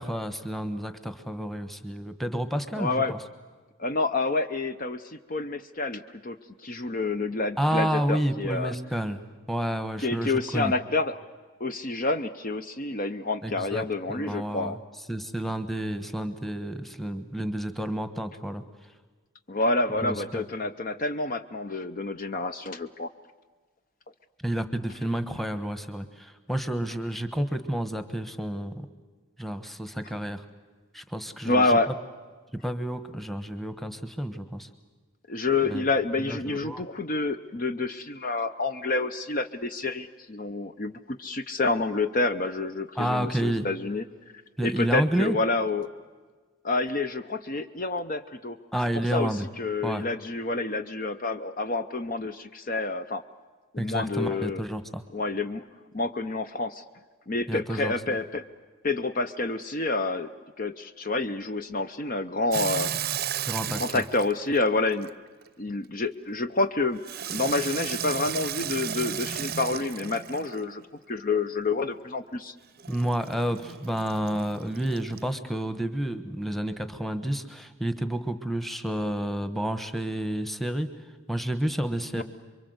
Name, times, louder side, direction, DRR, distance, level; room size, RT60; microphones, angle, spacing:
voice 1, 0.0-3.2 7.6-10.7 13.4-14.8 15.1-18.6 20.0-20.4 24.4-28.9 29.4-30.4 30.9-31.8 32.6-34.7 35.7-35.8 36.2-36.8 43.0-43.7 44.6-45.4 48.7-49.5 49.8-50.0 53.8-55.0 57.5-57.9 63.4-64.0 72.9-80.9 81.3-82.2, right 1 dB, ahead, 10 dB, 1.2 m, -30 dB
voice 2, 2.8-3.1 3.8-6.4 6.6-8.7 10.0-11.2 11.6-14.8 19.5-23.1 31.4-31.9 35.3-44.0 44.6-45.9 46.6-48.6 48.9-53.2 53.7-54.6 55.1-55.6 55.9-56.8 57.3-58.4 58.8-60.3 60.6-62.9 63.7-65.1 65.6-67.0 67.3-72.5 82.2-82.3, left 3 dB, 40° left, 9 dB, 0.8 m, -28 dB
Water tap faucet / Sink (filling or washing), 62.5-65.5 67.0-70.8 72.8-75.3, right 9 dB, 45° right, 0.7 m, -34 dB
27.5 x 23.5 x 8.0 m, 1.4 s
head